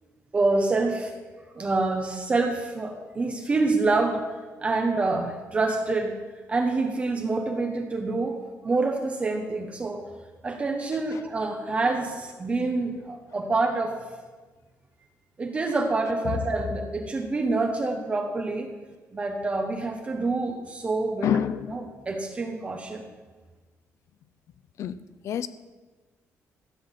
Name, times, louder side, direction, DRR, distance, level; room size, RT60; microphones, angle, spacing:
voice 1, 0.3-1.1 1.5-4.2 4.6-6.1 6.5-8.4 8.6-10.1 10.4-13.9 15.4-18.7 19.1-21.4 21.7-23.0, right 3 dB, 25° right, 3 dB, 1.2 m, -26 dB
voice 2, 21.2-21.8 24.8-24.9 25.2-25.5, left 9 dB, 65° left, 14 dB, 0.6 m, -26 dB
14.5 x 8.8 x 7.5 m, 1.3 s
cardioid pair, 170°, 5 cm